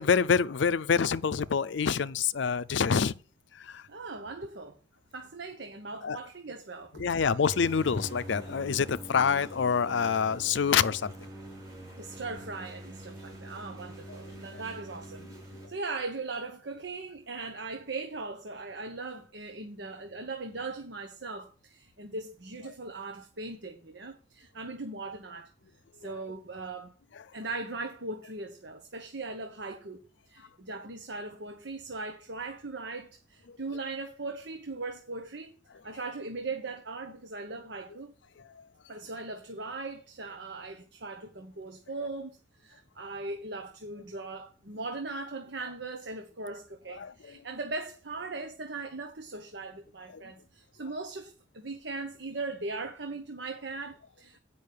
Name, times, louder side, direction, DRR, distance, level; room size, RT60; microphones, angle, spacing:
voice 1, 0.0-3.1 3.5-3.9 6.0-6.2 6.9-11.1 14.5-14.6 26.0-26.2 33.5-33.6 47.0-47.3 50.1-50.2, left 6 dB, 75° left, 0.5 m, -27 dB
voice 2, 3.9-4.8 5.1-7.0 11.9-15.3 15.7-25.5 26.0-27.0 27.3-30.0 30.3-35.6 35.8-38.1 38.9-54.4, right 3 dB, 70° right, 1.0 m, -39 dB
sound 1, 7.5-15.7, right 1 dB, 15° right, 3.7 m, -44 dB
8.5 x 5.5 x 6.5 m
head